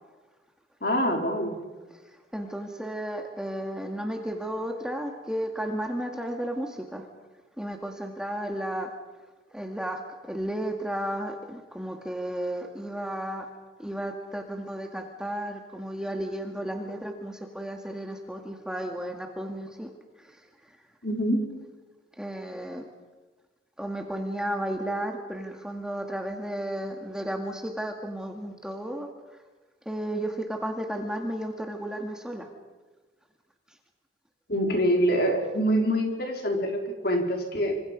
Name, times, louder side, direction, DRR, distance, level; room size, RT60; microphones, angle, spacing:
voice 1, 0.8-1.5 21.0-21.5 34.5-37.8, equal, 50° left, 2 dB, 4.6 m, -25 dB
voice 2, 2.1-7.0 7.6-8.9 9.5-13.5 13.8-19.9 20.2-20.8 22.2-22.9 23.8-29.1 29.9-32.5, right 1 dB, 5° right, 3 dB, 2.1 m, -33 dB
27.0 x 26.0 x 5.4 m, 1.3 s
head